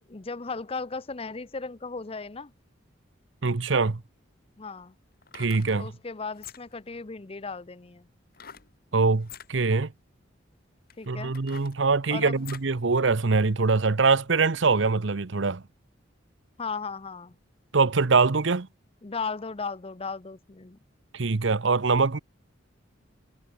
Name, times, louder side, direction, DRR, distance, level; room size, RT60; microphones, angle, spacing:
voice 1, 0.1-2.5 4.6-4.9 5.7-8.1 11.0-11.3 12.1-12.4 16.6-17.4 19.0-20.8, left 4 dB, 30° left, 0.7 m, -36 dB
voice 2, 3.4-4.0 5.3-5.9 8.9-9.9 11.1-15.6 17.7-18.7 21.1-22.2, right 4 dB, 70° right, 0.8 m, -23 dB
sound 1, 5.1-5.8 6.3-6.9 8.3-8.7 9.2-9.5 10.2-10.3 10.9-12.8 13.2-13.3, left 8 dB, 50° left, 4.0 m, -46 dB
head